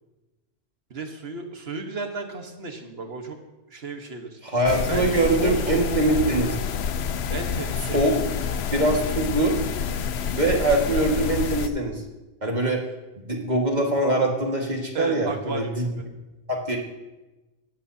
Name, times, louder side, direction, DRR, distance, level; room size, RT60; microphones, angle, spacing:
voice 1, 0.9-3.4 3.7-4.4 4.9-5.8 6.1-6.3 7.3-8.1 14.9-16.0, right 3 dB, 75° right, 4 dB, 1.5 m, -33 dB
voice 2, 4.4-6.6 7.9-8.2 8.7-9.6 10.4-12.0 12.4-12.8 13.2-15.9 16.5-16.8, right 2 dB, 45° right, 0 dB, 2.0 m, -23 dB
sound 1, 4.7-11.7, left 7 dB, 90° left, 0.9 m, -28 dB
18.5 x 14.5 x 2.8 m, 1.1 s
omnidirectional pair, 1.0 m